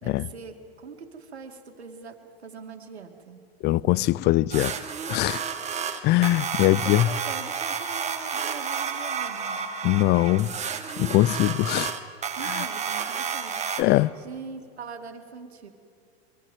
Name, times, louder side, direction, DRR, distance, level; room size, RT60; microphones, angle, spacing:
voice 1, 0.0-3.5 6.6-9.7 12.4-13.6 14.2-15.7, right 5 dB, 90° right, 2.3 m, -42 dB
voice 2, 3.6-4.8 5.1-5.4 6.0-7.1 9.8-10.5 11.0-11.9 12.5-12.6 13.8-14.1, left 17 dB, 35° left, 0.5 m, -21 dB
sound 1, 4.5-13.8, right 6 dB, 20° right, 2.0 m, -31 dB
22.5 x 14.5 x 9.2 m
hypercardioid pair, 100°, 32 cm